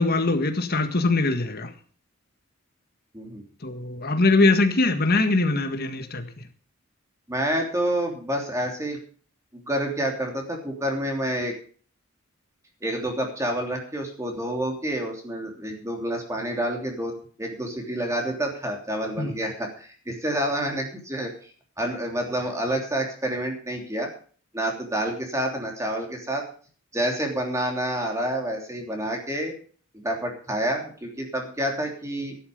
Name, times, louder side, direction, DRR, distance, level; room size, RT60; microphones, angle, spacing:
voice 1, 0.0-1.7 3.6-6.2 19.2-19.3, left 2 dB, 50° left, 1.7 m, -22 dB
voice 2, 7.3-9.0 9.5-11.5 12.8-21.5 21.8-24.1 24.5-26.4 26.9-29.5 29.9-32.4, right 1 dB, 15° right, 3.1 m, -28 dB
12.5 x 11.5 x 5.3 m
head